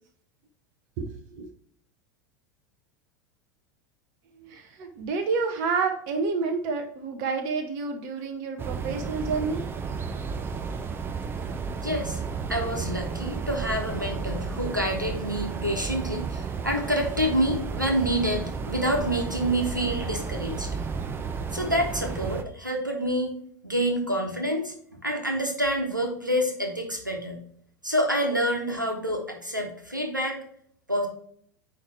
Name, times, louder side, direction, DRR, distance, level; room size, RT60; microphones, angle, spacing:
voice 1, 1.0-1.5 4.4-9.7, right 4 dB, 45° right, 6 dB, 0.9 m, -29 dB
sound 1, 8.6-22.4, right 5 dB, 20° right, 0.6 m, -32 dB
voice 2, 11.8-12.2 12.5-20.7 21.5-23.3 23.6-24.7 25.0-27.4 27.8-30.4 30.9-31.1, equal, 90° right, 2 dB, 1.3 m, -27 dB
9.4 x 3.3 x 3.1 m, 0.63 s
figure-of-eight pair, 80°, 10 cm